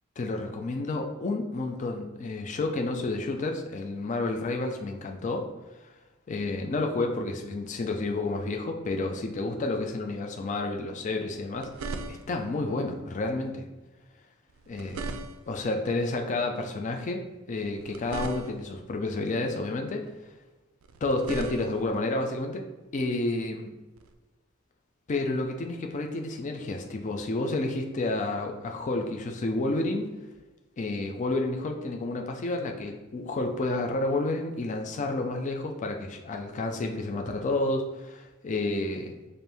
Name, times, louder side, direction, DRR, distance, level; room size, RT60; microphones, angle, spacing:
voice 1, 0.2-5.5 5.8-5.9 6.3-13.7 14.7-15.1 15.5-20.1 21.0-22.6 22.9-23.7 25.1-30.1 30.8-39.1, left 2 dB, 35° left, 3 dB, 0.4 m, -30 dB
sound 1, 11.3-12.5 14.5-15.7 17.7-18.8 20.8-22.0 24.0-24.1, right 3 dB, 75° right, 0.4 m, -39 dB
4.3 x 2.6 x 3.4 m, 1.1 s
head